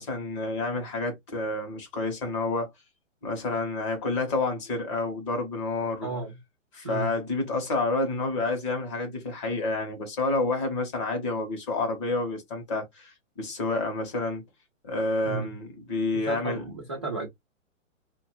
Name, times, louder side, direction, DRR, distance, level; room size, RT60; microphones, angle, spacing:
voice 1, 0.0-2.7 3.2-6.1 6.7-14.4 14.8-16.6, left 2 dB, 25° left, 0.7 m, -29 dB
voice 2, 6.0-6.4 6.8-7.1 15.2-15.5 16.1-17.3, right 3 dB, 25° right, 0.3 m, -33 dB
3.0 x 2.2 x 2.9 m
hypercardioid pair, 160°, 39 cm